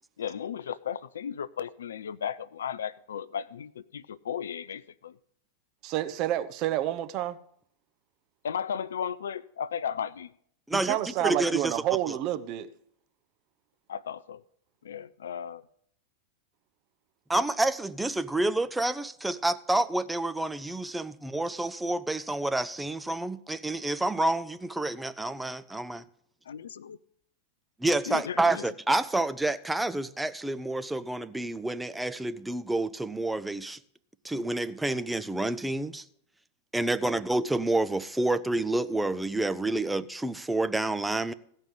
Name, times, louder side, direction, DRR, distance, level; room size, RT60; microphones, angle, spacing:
voice 1, 0.2-5.2 8.4-10.3 13.9-14.4 14.8-15.6 26.5-27.0 28.1-28.7, left 8 dB, 65° left, 0.4 m, -35 dB
voice 2, 5.8-7.4 10.7-12.7, right 13 dB, 40° right, 0.8 m, -29 dB
voice 3, 10.7-11.7 17.3-26.0 27.8-33.8 34.2-36.0 36.7-41.3, right 2 dB, 5° right, 0.6 m, -29 dB
16.0 x 5.4 x 7.4 m
figure-of-eight pair, 90°, 0 cm